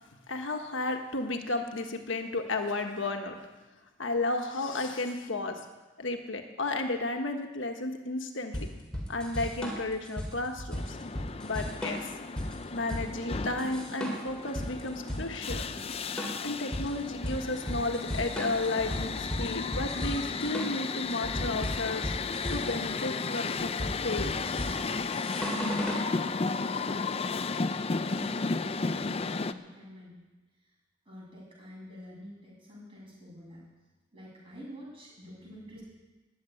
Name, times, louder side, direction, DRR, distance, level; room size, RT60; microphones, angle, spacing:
voice 1, 0.3-3.4 4.0-5.6 6.0-8.7 9.1-11.0 11.4-12.1 12.7-15.6 16.4-22.1 22.5-23.7 24.0-24.3, left 2 dB, 75° left, 4 dB, 1.5 m, -33 dB
sound 1, 8.5-26.1, equal, 5° left, 3.3 m, -36 dB
sound 2, 10.8-29.5, left 4 dB, 30° left, 0.5 m, -34 dB
voice 2, 28.1-30.2 31.1-33.6 34.1-35.8, equal, 25° right, -4 dB, 7.2 m, -48 dB
14.5 x 9.4 x 9.9 m, 1.2 s
head